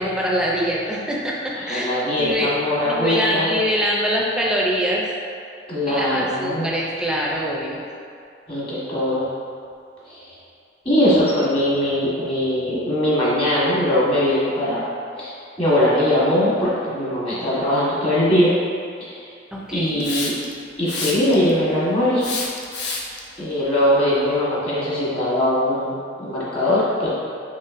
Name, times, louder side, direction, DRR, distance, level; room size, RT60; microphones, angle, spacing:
voice 1, 0.0-2.5 2.8-5.1 5.9-7.8 19.5-20.1, equal, 5° right, -3 dB, 0.4 m, -24 dB
voice 2, 1.7-3.5 5.7-6.7 8.5-9.3 10.1-10.3 10.8-14.8 15.2-15.3 15.6-18.5 19.0-19.3 19.7-20.3 20.8-22.4 23.4-27.1, left 1 dB, 30° left, -9 dB, 1.2 m, -21 dB
Hiss, 20.0-20.5 20.9-21.5 22.2-23.2, left 4 dB, 70° left, 0.5 m, -28 dB
5.6 x 3.0 x 2.5 m, 2.4 s
head